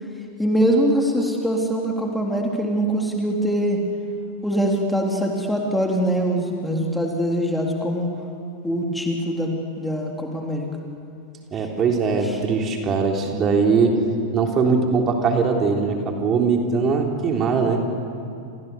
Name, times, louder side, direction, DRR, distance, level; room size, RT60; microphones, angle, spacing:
voice 1, 0.4-3.8 4.4-8.1 8.6-9.5 9.8-10.7 12.2-12.4, equal, 5° left, 0 dB, 3.3 m, -23 dB
voice 2, 11.5-14.0 14.3-17.8, right 5 dB, 30° right, 2 dB, 3.7 m, -21 dB
29.0 x 29.0 x 7.1 m, 2.5 s
figure-of-eight pair, 90°, 0 cm